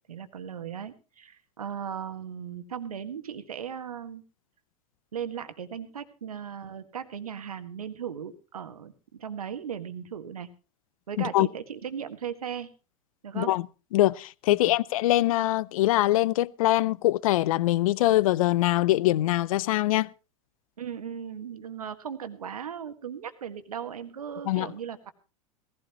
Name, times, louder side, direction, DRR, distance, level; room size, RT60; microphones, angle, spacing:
voice 1, 0.1-4.2 5.1-10.5 11.1-12.7 13.2-13.6 14.5-14.8 20.8-25.1, right 8 dB, 90° right, 1.6 m, -37 dB
voice 2, 11.2-11.5 13.3-13.6 13.9-20.1 24.5-24.7, left 16 dB, 70° left, 0.6 m, -23 dB
18.0 x 15.5 x 3.0 m
hypercardioid pair, 95°, 19 cm